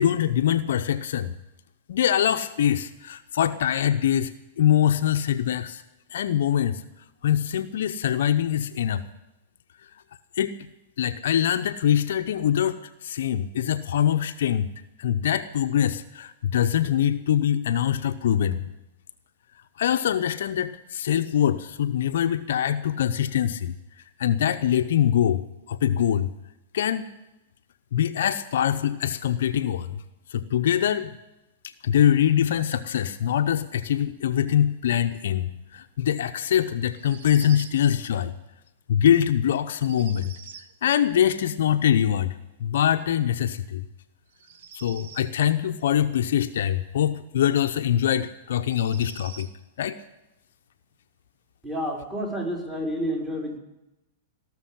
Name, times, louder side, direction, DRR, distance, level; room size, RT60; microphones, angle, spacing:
voice 1, 0.0-1.3 1.9-4.3 4.6-5.8 6.1-6.8 7.2-9.0 10.4-10.5 11.0-14.7 15.0-18.6 19.8-23.7 24.2-26.3 26.7-27.0 27.9-30.0 30.3-31.1 31.8-38.3 38.9-40.3 40.8-42.3 42.6-43.8 44.7-49.5 49.8-50.0, left 10 dB, 65° left, 9 dB, 0.7 m, -23 dB
sound 1, 36.9-37.8 39.7-40.7 44.3-45.3 47.5-47.6 48.5-49.5, right 7 dB, 60° right, 1.0 m, -45 dB
voice 2, 51.6-53.6, equal, 15° right, -2 dB, 5.0 m, -29 dB
18.0 x 6.7 x 10.0 m, 0.94 s
hypercardioid pair, 110°, 0 cm